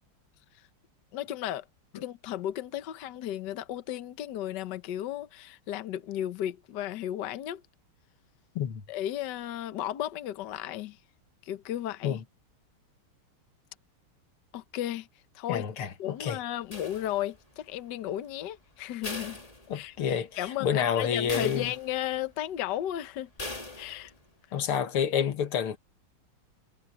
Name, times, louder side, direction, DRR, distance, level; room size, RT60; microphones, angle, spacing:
voice 1, 1.1-1.6 1.9-7.6 8.9-11.0 11.4-12.2 14.5-15.1 15.3-15.7 16.0-19.4 19.7-23.3 23.8-24.1, left 12 dB, 60° left, 1.4 m, -34 dB
voice 2, 15.5-16.4 19.7-21.7 24.5-25.8, left 8 dB, 90° left, 2.3 m, -29 dB
sound 1, 16.7-17.5 19.0-20.2 20.6-20.7 21.3-22.2 23.4-24.2, left 2 dB, 15° left, 2.4 m, -40 dB
omnidirectional pair, 2.4 m